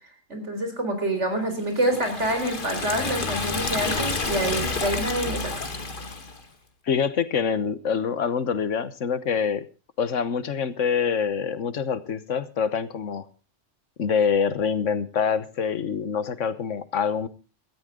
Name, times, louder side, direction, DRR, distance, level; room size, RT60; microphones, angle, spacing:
voice 1, 0.3-5.7, right 1 dB, 70° right, 6 dB, 4.4 m, -27 dB
Liquid, 1.8-6.4, left 3 dB, 45° left, 1.7 m, -29 dB
voice 2, 6.9-9.7 10.0-13.2 14.0-17.3, left 6 dB, 80° left, 14 dB, 1.4 m, -25 dB
17.5 x 14.0 x 3.7 m, 0.32 s
omnidirectional pair, 1.3 m